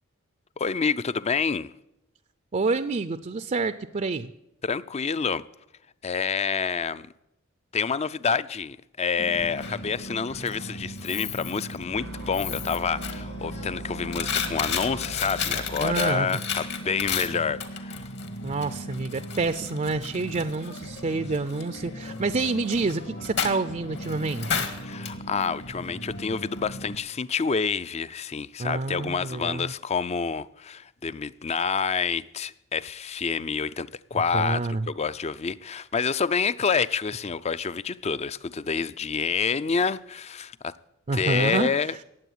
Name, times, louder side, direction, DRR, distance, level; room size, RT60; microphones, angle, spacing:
voice 1, 0.6-1.7 4.6-5.5 6.0-7.1 7.7-18.1 24.8-40.7 41.1-41.9, left 5 dB, 30° left, 0.5 m, -28 dB
voice 2, 2.5-4.3 15.8-16.4 18.4-24.6 28.6-29.7 34.3-34.9 41.1-41.7, right 3 dB, 35° right, 0.5 m, -28 dB
Coin (dropping), 9.2-27.0, left 4 dB, 60° left, 1.8 m, -34 dB
sound 1, 11.9-16.0, right 2 dB, 90° right, 1.0 m, -40 dB
18.5 x 7.8 x 10.0 m
head